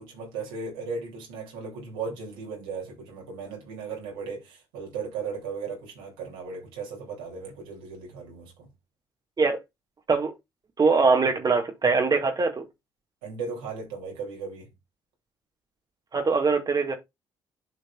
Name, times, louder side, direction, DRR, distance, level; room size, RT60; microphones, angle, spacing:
voice 1, 0.0-8.7 13.2-14.7, right 5 dB, 75° right, 3.1 m, -36 dB
voice 2, 10.8-12.6 16.1-16.9, right 4 dB, 35° right, 1.8 m, -22 dB
11.0 x 5.1 x 2.4 m
figure-of-eight pair, 45°, 12 cm